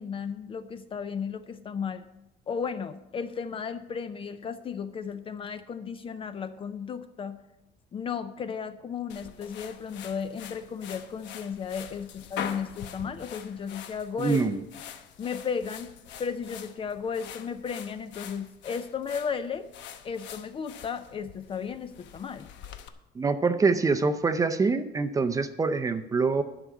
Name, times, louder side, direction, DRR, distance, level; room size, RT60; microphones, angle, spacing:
voice 1, 0.0-2.1 2.5-7.4 7.9-14.4 15.2-19.7 20.0-22.5, left 6 dB, 30° left, 11 dB, 0.5 m, -34 dB
sound 1, 9.1-22.9, left 9 dB, 80° left, 0.9 m, -44 dB
voice 2, 14.2-14.6 23.1-26.4, right 4 dB, 20° right, 9 dB, 0.5 m, -25 dB
11.5 x 6.0 x 8.3 m, 0.91 s
cardioid pair, 180°, 19 cm